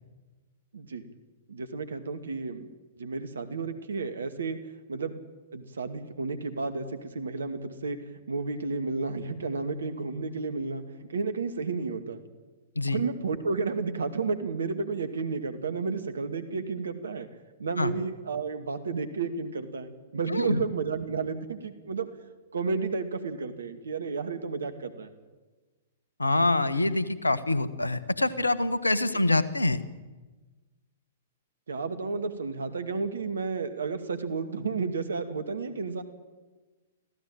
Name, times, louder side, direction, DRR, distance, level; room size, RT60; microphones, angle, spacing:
voice 1, 0.7-1.0 1.5-2.7 3.0-4.6 4.9-5.2 5.5-8.0 8.3-12.2 12.9-17.3 17.6-22.1 22.5-25.1 29.1-29.3 31.7-36.0, right 4 dB, 70° right, 9 dB, 2.3 m, -32 dB
voice 2, 20.3-20.6 26.2-29.8, left 2 dB, 85° left, 15 dB, 1.5 m, -25 dB
25.0 x 16.0 x 9.0 m, 1.3 s
figure-of-eight pair, 110°, 0 cm